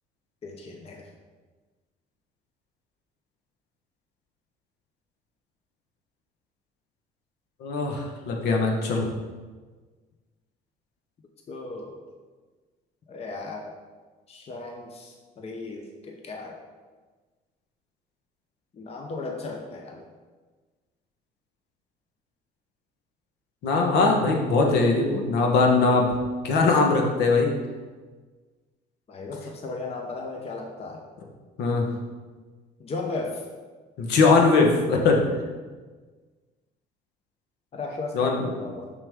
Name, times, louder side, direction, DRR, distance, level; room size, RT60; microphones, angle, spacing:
voice 1, 0.4-1.1 11.5-12.0 13.1-13.7 14.3-16.6 18.7-20.1 29.1-31.0 32.8-33.5 37.7-38.9, left 3 dB, 35° left, 2 dB, 0.8 m, -36 dB
voice 2, 7.6-9.1 23.6-26.2 26.4-27.5 31.6-31.9 34.0-35.2 38.1-38.5, left 3 dB, 80° left, 1 dB, 1.3 m, -21 dB
6.3 x 6.0 x 3.7 m, 1.4 s
cardioid pair, 110°, 17 cm